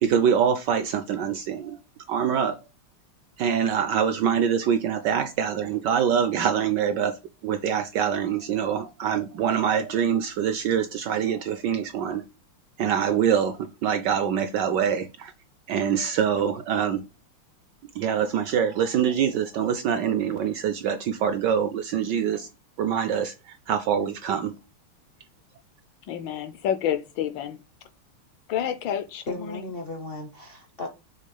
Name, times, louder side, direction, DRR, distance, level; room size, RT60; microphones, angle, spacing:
voice 1, 0.0-1.8 2.1-2.6 3.4-7.2 7.4-12.2 12.8-15.3 15.7-17.0 17.9-22.5 22.8-24.5, right 8 dB, 75° right, 1.0 m, -24 dB
voice 2, 26.1-27.6 28.5-29.6, left 9 dB, 70° left, 1.2 m, -29 dB
voice 3, 29.3-30.9, left 3 dB, 55° left, 0.6 m, -35 dB
6.5 x 3.6 x 5.4 m
omnidirectional pair, 2.4 m